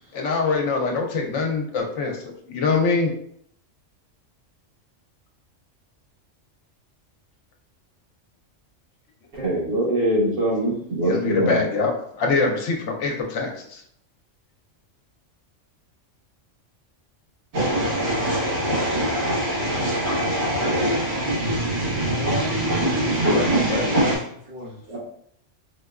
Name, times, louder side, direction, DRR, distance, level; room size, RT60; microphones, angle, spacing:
voice 1, 0.1-2.2 2.5-3.1 11.1-11.9 12.2-13.8 23.3-23.8, left 4 dB, 75° left, 2 dB, 0.9 m, -23 dB
voice 2, 9.3-11.6 24.9-25.0, right 1 dB, 85° right, -5 dB, 1.6 m, -23 dB
sound 1, 17.5-24.2, right 1 dB, 60° right, 1.4 m, -23 dB
voice 3, 22.2-25.0, equal, 45° right, -4 dB, 1.0 m, -31 dB
4.4 x 2.2 x 2.4 m, 0.67 s
omnidirectional pair, 1.3 m